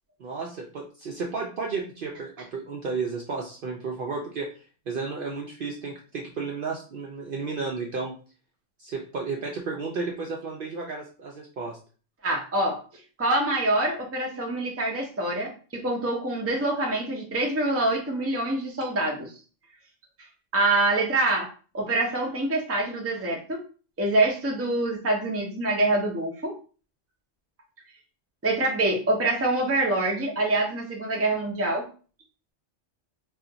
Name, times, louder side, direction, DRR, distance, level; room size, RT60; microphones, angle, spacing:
voice 1, 0.2-4.5 4.9-8.1 8.8-11.8, right 4 dB, 60° right, 0 dB, 0.6 m, -33 dB
voice 2, 12.2-12.8 13.2-19.3 20.5-21.5 21.7-23.6 24.0-26.5 28.4-31.8, right 2 dB, 15° right, 0 dB, 0.5 m, -25 dB
2.4 x 2.4 x 3.8 m, 0.38 s
omnidirectional pair, 1.2 m